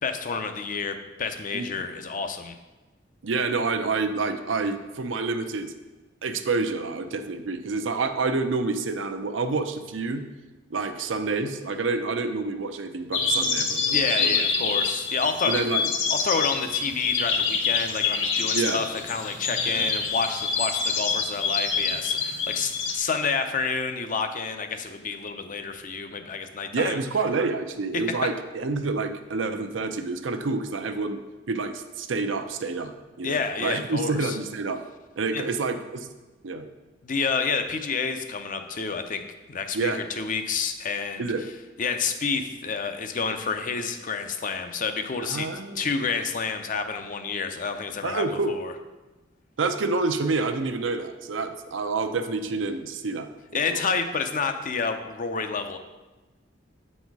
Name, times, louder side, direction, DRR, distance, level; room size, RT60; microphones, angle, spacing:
voice 1, 0.0-2.6 13.9-15.6 16.1-27.0 33.2-34.4 35.3-35.4 37.0-39.2 39.5-41.3 41.8-45.5 45.8-48.7 53.5-55.8, left 5 dB, 45° left, 7 dB, 0.6 m, -29 dB
voice 2, 1.5-1.8 3.2-5.7 6.2-10.3 10.7-14.4 15.4-15.9 18.5-18.8 19.7-19.9 26.7-31.2 31.5-34.8 35.2-36.1 36.4-36.7 39.7-40.0 41.2-41.5 45.2-45.9 48.0-48.5 49.6-53.3 53.7-53.8, right 3 dB, 85° right, 7 dB, 0.6 m, -28 dB
sound 1, 13.1-23.0, left 5 dB, 85° left, 0.8 m, -26 dB
8.0 x 4.3 x 4.7 m, 1.2 s
head